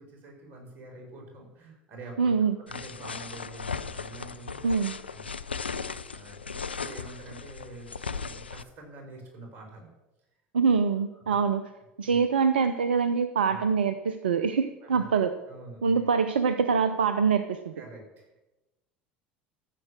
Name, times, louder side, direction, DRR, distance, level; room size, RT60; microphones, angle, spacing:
voice 1, 0.0-2.3 2.7-5.3 6.0-9.9 11.1-11.4 12.0-12.2 13.4-13.6 14.8-16.1 17.7-18.3, right 2 dB, 40° right, 0 dB, 5.1 m, -47 dB
voice 2, 2.2-2.5 4.6-5.0 10.5-11.6 12.0-15.3 15.8-17.7, right 5 dB, 70° right, 11 dB, 0.6 m, -24 dB
sound 1, 2.7-8.6, left 5 dB, 85° left, 0.4 m, -37 dB
14.5 x 7.5 x 6.3 m, 1.0 s
figure-of-eight pair, 70°, 6 cm